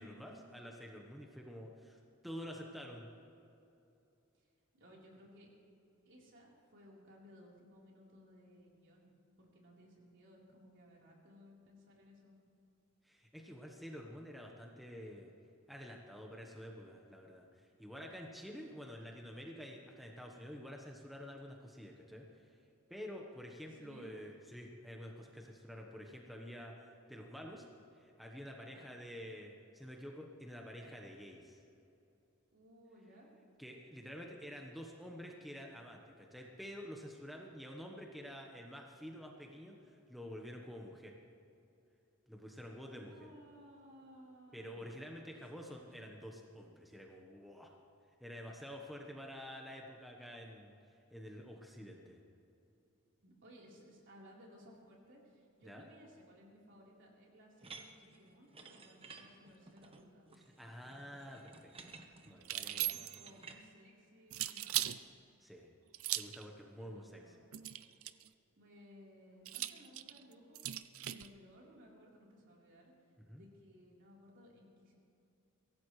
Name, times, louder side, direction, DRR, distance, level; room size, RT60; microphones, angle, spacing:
voice 1, 0.0-3.1 13.0-15.3 15.7-22.6 22.9-26.7 27.1-27.7 28.0-31.6 33.6-41.2 42.3-43.3 44.5-47.7 48.2-52.2 55.6-55.9 60.6-61.9 62.2-62.9 65.4-65.7 66.1-67.2 73.2-73.4, equal, ahead, 0 dB, 1.1 m, -49 dB
voice 2, 4.7-5.5 6.0-9.1 9.4-12.4 23.5-24.2 28.6-28.9 32.5-33.3 42.9-45.9 53.2-60.3 62.6-65.1 66.8-67.3 68.6-72.9 73.3-75.0, equal, 60° right, -4 dB, 4.0 m, -60 dB
sound 1, 57.6-63.6, right 4 dB, 25° right, 1.1 m, -55 dB
sound 2, 62.4-63.3 64.3-65.0 65.9-66.4 67.5-68.3 69.5-71.3, right 14 dB, 80° right, 0.5 m, -38 dB
23.5 x 16.5 x 3.3 m, 2.7 s
head